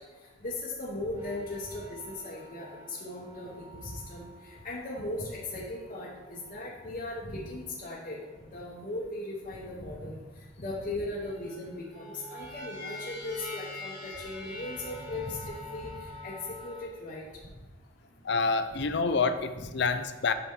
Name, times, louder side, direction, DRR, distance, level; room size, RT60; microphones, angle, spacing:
voice 1, 0.4-4.3 4.6-8.2 8.5-10.2 10.6-15.9 16.2-16.3 16.6-17.2 18.7-18.8 19.6-19.7, left 2 dB, 40° left, -6 dB, 1.0 m, -38 dB
sound 1, 1.2-6.7 7.3-8.2 9.4-10.1 11.1-16.8, left 1 dB, 15° right, 1.7 m, -46 dB
voice 2, 18.2-20.3, left 4 dB, 55° left, 11 dB, 0.5 m, -27 dB
8.4 x 5.8 x 3.8 m, 1.2 s
head